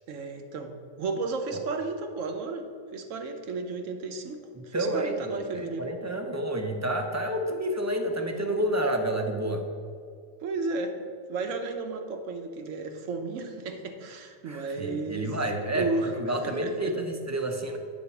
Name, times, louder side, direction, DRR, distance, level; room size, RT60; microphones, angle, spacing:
voice 1, 0.1-0.7 1.0-2.7 2.9-5.9 10.4-11.0 11.3-15.4 15.7-16.9, right 3 dB, 90° right, 5 dB, 1.2 m, -33 dB
voice 2, 4.7-9.6 14.5-17.8, right 1 dB, 25° right, 4 dB, 0.3 m, -29 dB
8.5 x 4.3 x 7.0 m, 2.2 s
omnidirectional pair, 1.3 m